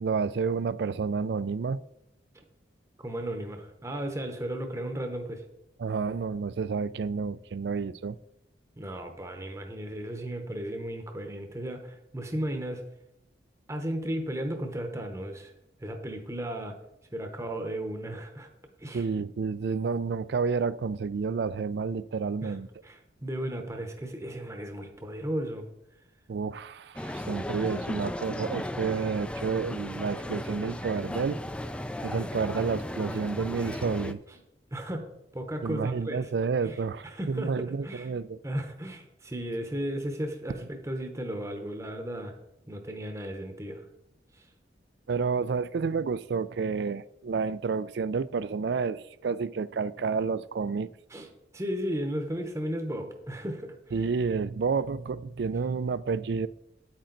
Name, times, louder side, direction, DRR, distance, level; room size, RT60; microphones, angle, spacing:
voice 1, 0.0-1.8 5.8-8.2 18.9-22.7 26.3-31.4 32.0-34.2 35.6-38.4 45.1-50.9 53.9-56.5, right 5 dB, 65° right, 0.4 m, -30 dB
voice 2, 3.0-5.4 8.8-12.8 13.7-15.5 15.8-16.7 17.1-18.5 18.8-19.0 22.4-22.6 22.8-25.7 34.3-34.4 34.7-36.3 36.6-38.2 38.4-42.4 42.7-43.9 44.3-44.4 51.1-51.3 51.5-54.0, right 1 dB, 15° right, 0.9 m, -35 dB
sound 1, 27.0-34.1, left 1 dB, 5° left, 0.3 m, -35 dB
9.0 x 8.7 x 3.9 m
head